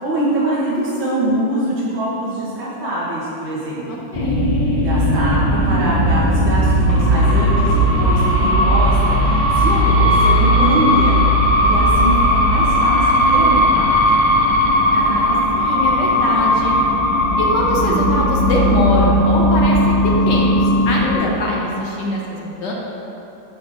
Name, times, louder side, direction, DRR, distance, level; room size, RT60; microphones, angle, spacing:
voice 1, 0.0-3.8 4.8-11.2 11.6-14.2, right 1 dB, 80° right, -8 dB, 2.0 m, -23 dB
voice 2, 3.9-4.4 11.7-12.0 14.9-16.7 17.4-22.7, left 1 dB, 65° left, -3 dB, 1.7 m, -23 dB
sound 1, 4.1-21.2, equal, 25° left, 0.8 m, -16 dB
8.7 x 3.9 x 6.2 m, 2.8 s
omnidirectional pair, 2.1 m